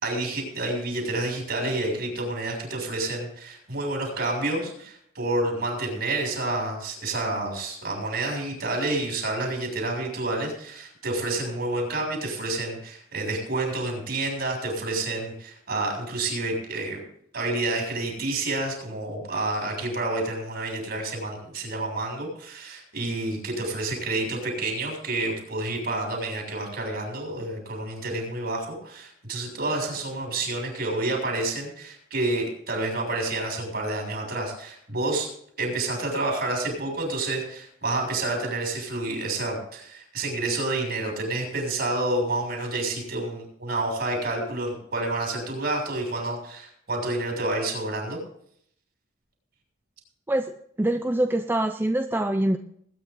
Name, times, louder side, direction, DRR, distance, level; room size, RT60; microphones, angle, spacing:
voice 1, 0.0-17.0 17.3-35.3 35.6-48.2, right 2 dB, 55° right, 1 dB, 6.6 m, -29 dB
voice 2, 50.3-52.6, right 1 dB, 10° right, 7 dB, 0.5 m, -25 dB
21.0 x 9.9 x 3.9 m, 0.66 s
head